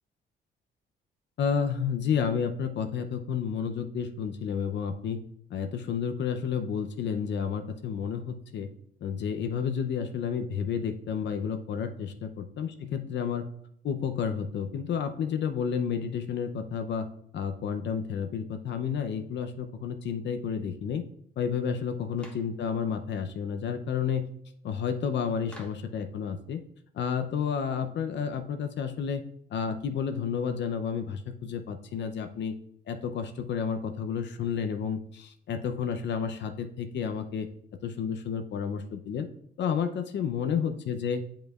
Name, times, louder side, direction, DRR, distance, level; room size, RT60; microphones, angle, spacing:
voice 1, 1.4-5.2 5.5-8.7 9.0-13.5 13.8-17.1 17.3-21.0 21.4-24.3 24.6-26.6 26.9-29.2 29.5-32.5 32.9-37.5 37.8-39.3 39.6-41.2, left 7 dB, 65° left, 7 dB, 0.6 m, -31 dB
Clapping, 22.2-22.5 25.5-25.9, equal, 5° left, 1.3 m, -49 dB
8.8 x 5.2 x 2.4 m, 0.68 s
cardioid pair, 90°, 20 cm